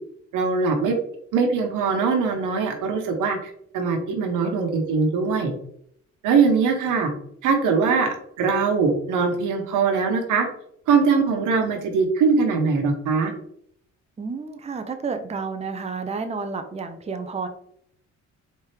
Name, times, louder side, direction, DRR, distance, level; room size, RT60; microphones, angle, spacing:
voice 1, 0.3-1.0 1.3-5.5 6.2-7.1 7.4-10.5 10.9-13.3, right 5 dB, 85° right, 4 dB, 1.1 m, -21 dB
voice 2, 14.2-17.5, right 4 dB, 20° right, 7 dB, 0.6 m, -30 dB
4.4 x 3.5 x 3.3 m, 0.67 s
cardioid pair, 90°, 30 cm